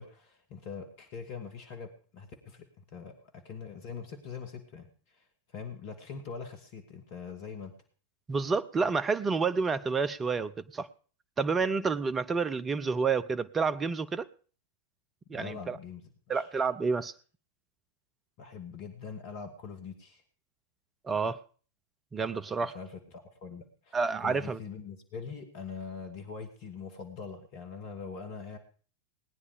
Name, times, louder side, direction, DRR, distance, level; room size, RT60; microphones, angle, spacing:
voice 1, 0.0-3.1 3.4-7.7 15.3-16.0 16.3-16.5 18.4-20.2 22.7-28.6, left 5 dB, 50° left, 2.3 m, -43 dB
voice 2, 8.3-10.9 11.4-14.3 15.3-15.8 16.3-17.1 21.0-21.4 22.1-22.8 23.9-24.6, right 4 dB, 20° right, 0.8 m, -29 dB
19.5 x 9.7 x 5.2 m
figure-of-eight pair, 90°, 0 cm